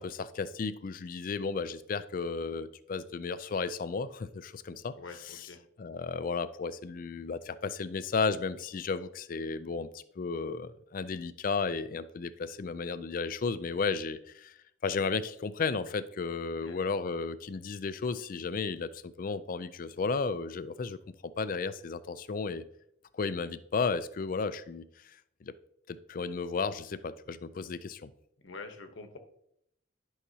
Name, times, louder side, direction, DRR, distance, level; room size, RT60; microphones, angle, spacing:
voice 1, 0.0-5.0 5.3-5.4 5.8-9.9 10.2-14.5 14.8-22.6 23.1-25.5 25.9-28.1, left 4 dB, 45° left, 15 dB, 0.4 m, -34 dB
voice 2, 4.9-5.6 16.6-16.9 28.4-29.2, left 3 dB, 70° left, 7 dB, 1.0 m, -46 dB
11.0 x 5.7 x 2.8 m, 0.73 s
head